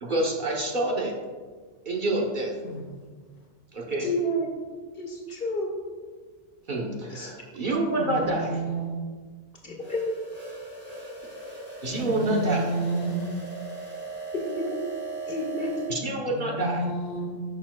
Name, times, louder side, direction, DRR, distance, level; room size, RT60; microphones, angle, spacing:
voice 1, 0.0-1.1 1.9-2.5 3.7-4.1 6.7-8.6 11.8-12.7 15.9-16.8, right 2 dB, 45° right, -1 dB, 1.0 m, -27 dB
voice 2, 4.0-4.5 5.0-5.7 7.1-7.3 9.6-10.1 14.3-14.8 15.3-15.8, equal, 50° left, -2 dB, 1.6 m, -30 dB
voice 3, 8.0-9.0 12.0-13.2 16.3-17.4, right 2 dB, 90° left, 1 dB, 1.6 m, -30 dB
sound 1, 9.8-16.0, right 3 dB, 10° right, 1.8 m, -38 dB
11.0 x 6.1 x 2.2 m, 1.5 s
omnidirectional pair, 1.2 m